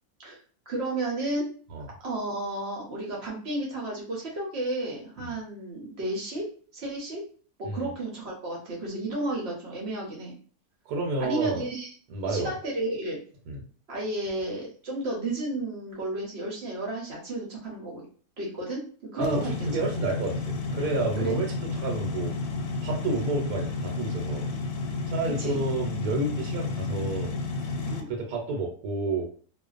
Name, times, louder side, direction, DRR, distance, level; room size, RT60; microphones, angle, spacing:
voice 1, 0.7-1.6 2.0-6.5 6.7-7.2 7.6-10.4 11.2-11.9 12.3-13.2 13.9-18.1 18.4-19.7 21.2-21.3 25.4-25.6 27.8-28.1, right 2 dB, 55° right, -2 dB, 0.8 m, -32 dB
voice 2, 10.9-11.6 12.1-12.5 13.5-13.6 19.2-22.3 22.8-24.5 25.1-27.3 28.1-29.3, right 2 dB, 80° right, 1 dB, 1.1 m, -30 dB
sound 1, 19.2-28.0, left 3 dB, 80° left, 1.1 m, -31 dB
2.4 x 2.1 x 2.4 m, 0.43 s
omnidirectional pair, 1.6 m